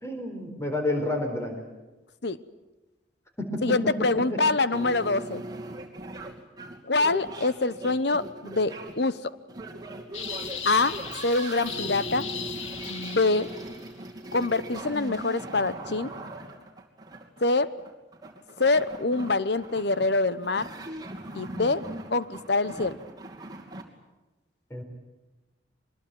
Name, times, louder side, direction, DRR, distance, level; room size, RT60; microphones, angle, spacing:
voice 1, 0.0-1.6 3.4-3.6 24.7-24.8, left 1 dB, 15° left, 3 dB, 4.5 m, -29 dB
voice 2, 3.6-5.4 6.9-9.2 10.6-12.3 12.9-13.5 14.3-16.1 17.4-17.7 18.6-20.7 21.3-21.8 22.1-23.0, left 3 dB, 60° left, 15 dB, 1.0 m, -25 dB
sound 1, 4.7-23.8, right 2 dB, 20° right, 2.7 m, -40 dB
sound 2, 10.1-13.8, left 7 dB, 85° left, 2.0 m, -37 dB
24.0 x 21.0 x 9.4 m, 1.1 s
head